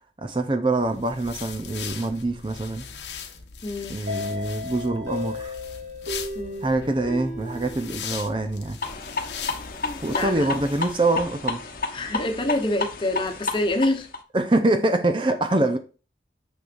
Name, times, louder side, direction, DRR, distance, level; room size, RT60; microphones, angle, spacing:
voice 1, 0.2-2.9 3.9-5.5 6.6-8.8 10.0-11.6 14.3-15.8, right 2 dB, 30° right, 0.6 m, -24 dB
sound 1, 0.8-11.0, left 7 dB, 90° left, 1.0 m, -40 dB
voice 2, 3.6-4.0 6.3-6.6 9.8-10.5 11.9-14.1, left 1 dB, 30° left, 1.1 m, -26 dB
sound 2, 4.1-8.7, left 2 dB, 80° right, 3.2 m, -35 dB
sound 3, 8.8-14.2, left 3 dB, 50° left, 1.0 m, -31 dB
6.6 x 6.4 x 2.6 m
head